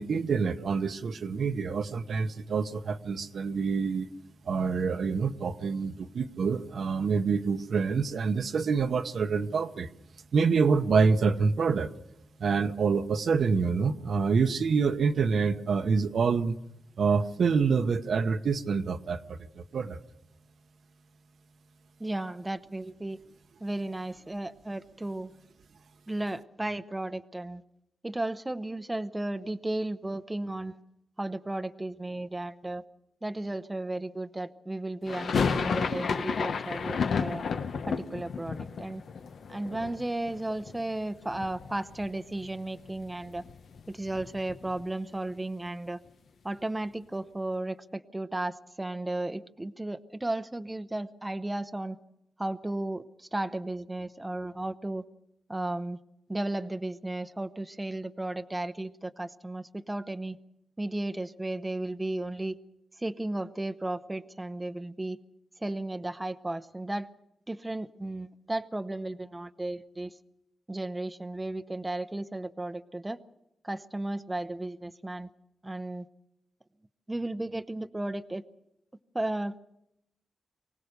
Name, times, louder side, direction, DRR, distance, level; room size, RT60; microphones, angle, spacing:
voice 1, 0.0-4.1 4.5-9.9 10.3-11.9 12.4-16.5 17.0-20.0, right 5 dB, 70° right, 8 dB, 1.0 m, -26 dB
voice 2, 22.0-23.2 23.6-25.3 26.1-27.6 28.0-30.8 31.2-32.8 33.2-37.5 37.9-39.0 39.5-43.4 43.9-46.0 46.4-52.0 52.4-55.0 55.5-56.0 56.3-60.4 60.8-62.6 63.0-65.2 65.6-67.1 67.5-70.1 70.7-73.2 73.6-75.3 75.6-76.0 77.1-78.4 79.1-79.6, right 2 dB, 15° right, 9 dB, 0.7 m, -34 dB
sound 1, 35.1-41.0 41.3-42.1 42.4-42.5 42.7-44.9, left 5 dB, 70° left, 1.1 m, -32 dB
24.5 x 17.5 x 6.8 m, 0.83 s
cardioid pair, 85°, 0 cm